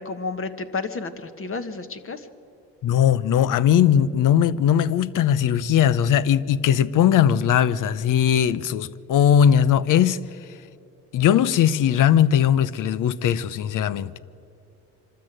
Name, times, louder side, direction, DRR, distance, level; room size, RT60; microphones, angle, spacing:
voice 1, 0.0-2.3, left 4 dB, 40° left, 1.5 m, -31 dB
voice 2, 2.8-10.2 11.1-14.2, left 9 dB, 65° left, 0.8 m, -19 dB
25.0 x 13.0 x 9.1 m
cardioid pair, 80°, 34 cm